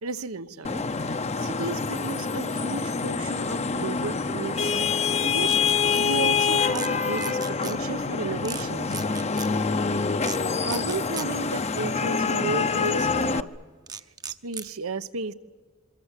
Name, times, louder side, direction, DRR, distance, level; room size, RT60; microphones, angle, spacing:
voice 1, 0.0-5.6 6.0-9.0 10.6-13.5 14.3-15.3, right 3 dB, 85° right, 12 dB, 1.0 m, -34 dB
Vehicle horn car horn honking / Traffic noise roadway noise, 0.6-13.4, left 5 dB, 30° left, 0.7 m, -26 dB
sound 1, 5.5-6.0 6.6-6.9 7.2-7.8 8.4-8.7 8.9-9.5 10.2-10.4 10.7-11.3 13.9-14.7, right 6 dB, 20° right, 0.7 m, -36 dB
27.0 x 23.5 x 8.3 m, 1.5 s
head